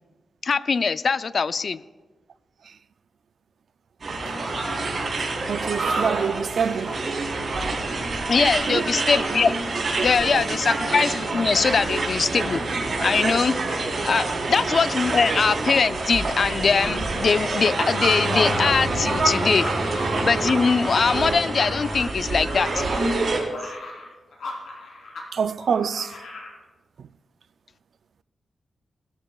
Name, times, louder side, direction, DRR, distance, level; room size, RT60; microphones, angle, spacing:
voice 1, 0.4-1.8 8.3-9.5 10.0-12.6 13.0-13.6 14.0-19.7 20.2-22.9, left 5 dB, 50° left, 0.3 m, -22 dB
sound 1, 4.0-23.4, right 3 dB, 45° right, 3.7 m, -26 dB
voice 2, 5.5-7.0 8.4-8.9 10.0-10.1 10.3-10.5 14.2-14.4 23.4-23.7 25.3-26.1, right 6 dB, 65° right, 0.3 m, -27 dB
Bowed string instrument, 17.8-23.0, left 2 dB, 15° left, 1.0 m, -35 dB
sound 2, 19.5-25.3 25.6-26.5, left 2 dB, 85° left, 3.5 m, -39 dB
18.5 x 13.5 x 2.3 m
wide cardioid pair, 140°, 0 cm